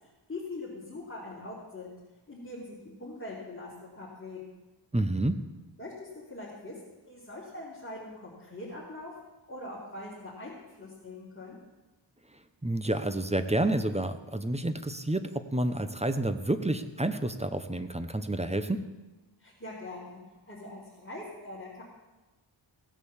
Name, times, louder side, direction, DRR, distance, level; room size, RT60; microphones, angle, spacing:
voice 1, 0.0-2.0 2.3-4.6 5.8-9.1 9.5-11.6 19.4-21.8, left 2 dB, 30° left, -8 dB, 3.4 m, -42 dB
voice 2, 4.9-5.4 12.6-18.9, right 1 dB, 15° right, 9 dB, 0.9 m, -29 dB
16.5 x 8.1 x 7.3 m, 1.1 s
wide cardioid pair, 95°, 47 cm